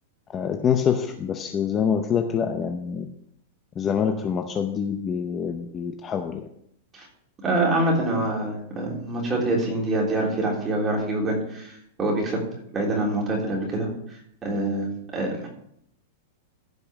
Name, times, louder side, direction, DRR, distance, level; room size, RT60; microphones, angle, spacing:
voice 1, 0.3-3.1 3.8-6.5, left 7 dB, 20° left, 5 dB, 0.7 m, -25 dB
voice 2, 7.4-12.4 12.7-13.9 14.4-15.5, right 2 dB, 15° right, -2 dB, 3.5 m, -25 dB
15.0 x 5.4 x 6.1 m, 0.72 s
supercardioid pair, 165°, 0 cm